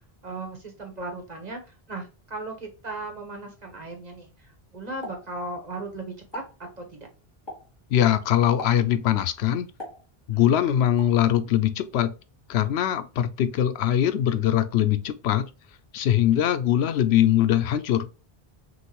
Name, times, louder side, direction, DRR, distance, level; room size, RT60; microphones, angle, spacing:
voice 1, 0.2-6.4 6.8-7.1 10.3-10.7, right 2 dB, 45° right, 1.4 m, -37 dB
Explosion, 5.0-5.9 6.2-6.6 7.5-7.8 8.6-9.0 9.8-10.5 11.0-11.2, left 1 dB, 25° left, 1.6 m, -40 dB
voice 2, 7.9-9.7 10.3-12.1 12.5-15.5 15.9-18.1, left 11 dB, 90° left, 0.8 m, -22 dB
6.3 x 2.6 x 3.0 m
omnidirectional pair, 1.0 m